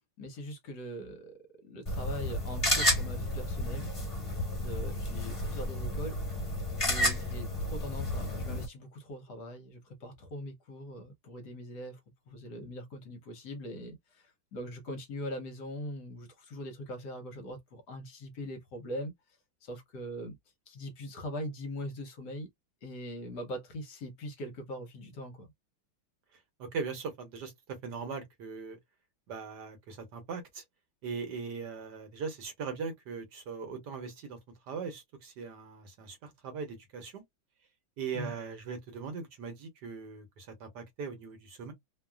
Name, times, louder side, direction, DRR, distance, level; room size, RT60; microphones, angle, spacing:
voice 1, 0.2-3.9 4.6-6.2 6.9-12.0 12.3-19.1 19.6-20.4 20.7-22.5 22.8-25.5 38.1-38.3, equal, 65° left, 1.2 m, -41 dB
sound 1, 1.9-8.7, left 1 dB, 20° left, 1.2 m, -31 dB
voice 2, 26.3-28.8 29.3-30.6 31.0-34.4 34.7-37.2 38.0-41.7, right 5 dB, 65° right, 1.3 m, -40 dB
3.1 x 2.3 x 2.2 m
omnidirectional pair, 2.2 m